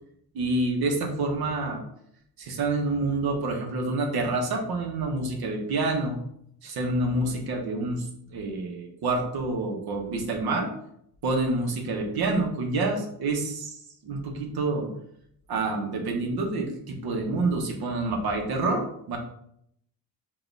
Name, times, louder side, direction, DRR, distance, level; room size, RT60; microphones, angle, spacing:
voice 1, 0.3-1.8 2.4-6.2 6.6-8.0 8.3-10.7 11.2-13.8 14.0-14.9 15.5-19.2, right 2 dB, 75° right, 3 dB, 0.9 m, -27 dB
4.6 x 2.4 x 3.2 m, 0.72 s
cardioid pair, 100°, 38 cm